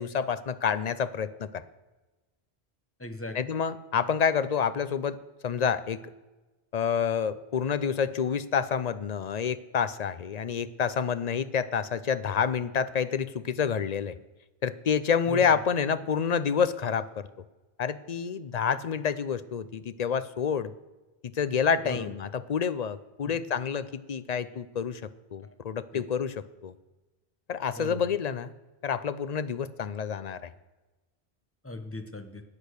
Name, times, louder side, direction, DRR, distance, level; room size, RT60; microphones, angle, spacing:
voice 1, 0.0-1.6 3.3-5.2 5.4-6.0 6.7-14.1 14.6-17.3 17.8-20.7 21.2-25.0 25.3-26.7 27.5-28.5 28.8-30.5, left 7 dB, 45° left, 14 dB, 0.6 m, -28 dB
voice 2, 3.0-3.4 15.3-15.4 21.8-22.1 23.2-23.4 25.4-25.5 25.9-26.0 27.8-28.0 31.6-32.4, left 2 dB, 15° left, 7 dB, 1.0 m, -38 dB
13.5 x 8.7 x 6.5 m, 1.1 s
omnidirectional pair, 1.1 m